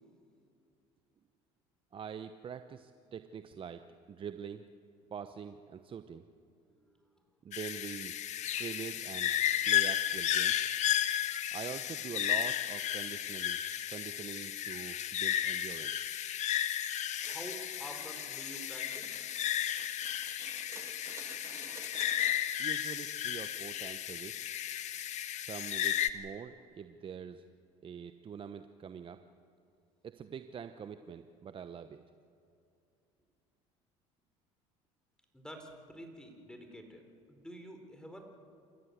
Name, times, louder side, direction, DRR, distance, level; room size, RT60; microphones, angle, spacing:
voice 1, 1.9-4.6 5.1-6.3 7.4-8.2 8.4-9.4 9.7-10.7 11.5-13.6 13.9-16.1 22.6-24.3 25.4-27.4 27.8-29.2 30.0-32.0, right 7 dB, 35° right, 9 dB, 0.9 m, -44 dB
voice 2, 6.7-7.3 17.3-19.2 35.3-37.0 37.3-38.3, equal, 5° left, 4 dB, 4.6 m, -48 dB
sound 1, 7.5-26.1, left 11 dB, 55° left, 1.2 m, -33 dB
sound 2, 17.1-22.4, right 3 dB, 20° right, 2.1 m, -52 dB
28.0 x 15.0 x 8.2 m, 2.5 s
supercardioid pair, 80°, 14 cm